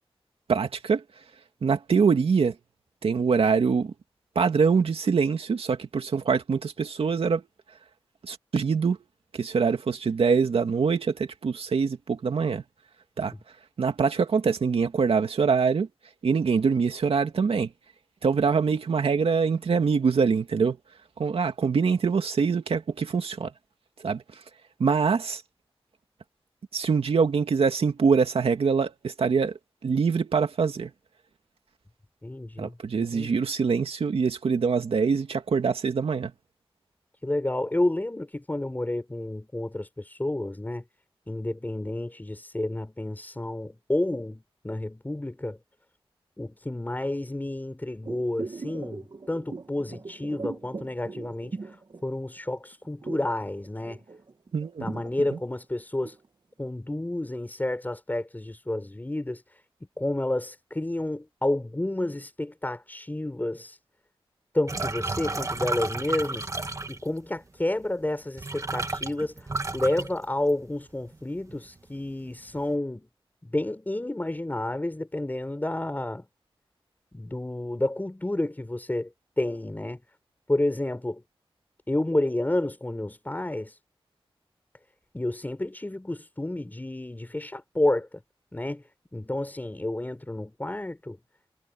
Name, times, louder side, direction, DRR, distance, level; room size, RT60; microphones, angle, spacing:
voice 1, 0.5-1.0 1.6-2.6 3.0-3.9 4.4-7.4 8.2-9.0 9.3-12.6 13.2-13.3 13.8-15.9 16.2-17.7 18.2-20.8 21.2-23.5 24.0-24.2 24.8-25.4 26.7-30.9 32.6-36.3 54.5-54.9, right 5 dB, 85° right, 2.4 m, -24 dB
voice 2, 32.2-33.4 37.2-40.9 41.3-45.6 46.4-51.8 52.0-54.0 54.8-56.2 56.6-59.6 60.0-63.8 64.5-73.1 73.4-76.3 77.1-80.0 80.5-81.2 81.9-83.8 85.1-88.2 88.5-91.2, left 1 dB, 20° left, 5.3 m, -30 dB
sound 1, 48.0-52.5 52.7-56.3 56.6-56.7, right 4 dB, 50° right, 2.4 m, -39 dB
sound 2, 64.7-67.2 68.0-68.1 68.4-70.8 71.1-71.6 71.9-72.6, right 2 dB, 35° right, 1.8 m, -32 dB
wide cardioid pair, 95°, 10 cm